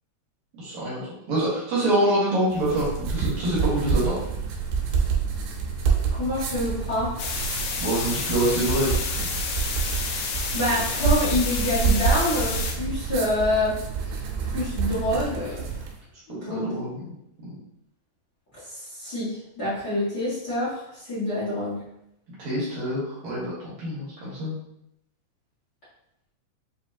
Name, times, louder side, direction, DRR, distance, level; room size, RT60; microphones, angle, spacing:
voice 1, 0.5-4.2 7.8-9.3 16.3-17.1 17.4-17.6 22.4-24.6, right 1 dB, 65° right, -7 dB, 1.8 m, -26 dB
sound 1, 2.5-16.0, right 6 dB, 80° right, 2.8 m, -27 dB
voice 2, 6.1-7.2 10.5-13.7 14.5-15.5 16.3-16.7 18.6-21.8, left 1 dB, 50° left, -11 dB, 1.2 m, -26 dB
sound 2, 7.2-12.7, left 5 dB, 85° left, 2.8 m, -30 dB
6.9 x 2.8 x 2.8 m, 0.79 s
omnidirectional pair, 5.0 m